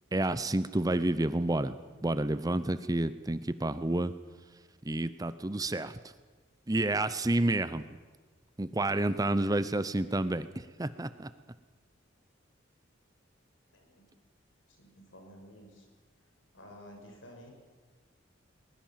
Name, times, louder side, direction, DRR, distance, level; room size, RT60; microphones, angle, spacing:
voice 1, 0.1-1.8 2.0-4.1 4.8-6.0 6.7-7.8 8.6-11.3, right 1 dB, 20° right, 14 dB, 0.7 m, -29 dB
voice 2, 13.7-14.1 14.8-15.9 16.2-17.5, equal, 80° left, 2 dB, 6.3 m, -52 dB
22.0 x 20.5 x 7.5 m, 1.3 s
head